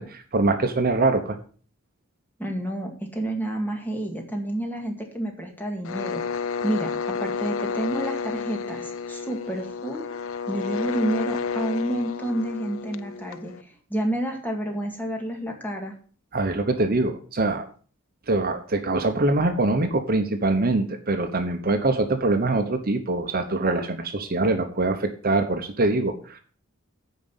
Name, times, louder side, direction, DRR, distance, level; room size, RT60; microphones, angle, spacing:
voice 1, 0.0-1.4 16.3-17.6 18.3-26.4, right 2 dB, 45° right, 7 dB, 1.0 m, -23 dB
voice 2, 2.4-10.1 10.5-15.9, right 1 dB, 10° left, 2 dB, 2.1 m, -30 dB
sound 1, 5.9-13.6, left 5 dB, 70° left, 0.5 m, -31 dB
9.4 x 5.3 x 7.3 m, 0.42 s
head